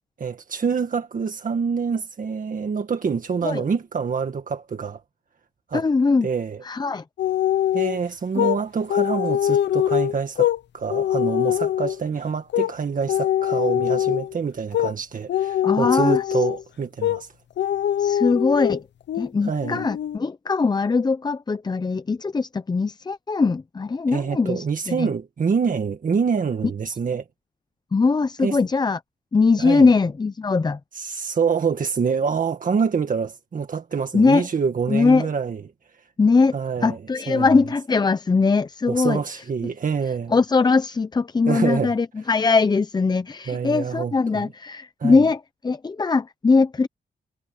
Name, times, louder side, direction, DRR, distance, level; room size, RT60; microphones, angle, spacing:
voice 1, 0.2-5.0 5.7-5.8 6.2-6.6 7.7-17.3 19.4-19.9 24.1-27.2 28.4-28.6 29.6-29.9 30.9-35.6 36.5-37.0 37.3-37.5 38.9-40.3 41.5-41.9 43.5-44.5 45.0-45.2, right 6 dB, 50° right, 1.8 m, -26 dB
voice 2, 5.7-6.3 6.6-7.0 8.3-8.5 15.6-16.4 18.0-18.8 19.1-25.1 27.9-29.0 29.3-30.8 34.1-34.5 34.9-35.3 36.2-36.6 36.8-39.4 40.3-46.9, left 4 dB, 25° left, 0.6 m, -21 dB
sound 1, 7.2-8.0 8.4-8.6 8.9-10.6 10.9-12.0 12.5-12.7 13.1-14.3 14.7-14.9 15.3-16.6 17.0-17.2 17.6-18.8 19.1-19.3 19.6-20.2, left 11 dB, 90° left, 0.7 m, -23 dB
cardioid pair, 105°, 18 cm